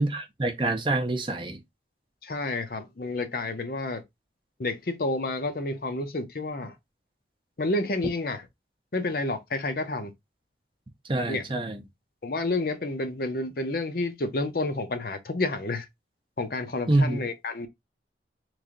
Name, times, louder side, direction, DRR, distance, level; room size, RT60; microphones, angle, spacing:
voice 1, 0.0-1.6 11.1-11.8 16.9-17.2, right 2 dB, 30° right, 0.6 m, -26 dB
voice 2, 2.2-4.0 4.6-6.7 7.6-8.5 8.9-10.1 11.3-11.4 12.2-15.9 16.4-17.7, left 2 dB, 55° left, 0.7 m, -30 dB
3.2 x 2.6 x 3.7 m
head